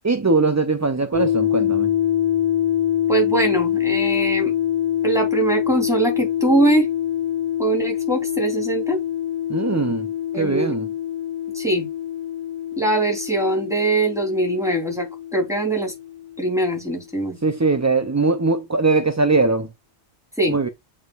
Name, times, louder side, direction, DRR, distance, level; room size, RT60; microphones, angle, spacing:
voice 1, 0.0-1.9 9.5-10.1 10.3-10.9 17.4-19.7 20.5-20.7, right 3 dB, 25° right, 0.4 m, -20 dB
sound 1, 1.1-16.6, left 11 dB, 15° left, 3.7 m, -25 dB
voice 2, 3.1-4.5 5.0-6.9 7.6-9.0 10.3-10.8 11.6-11.9 12.8-15.9 16.4-17.4 20.4-20.7, right 2 dB, 5° right, 3.5 m, -22 dB
8.4 x 4.8 x 2.5 m
omnidirectional pair, 1.1 m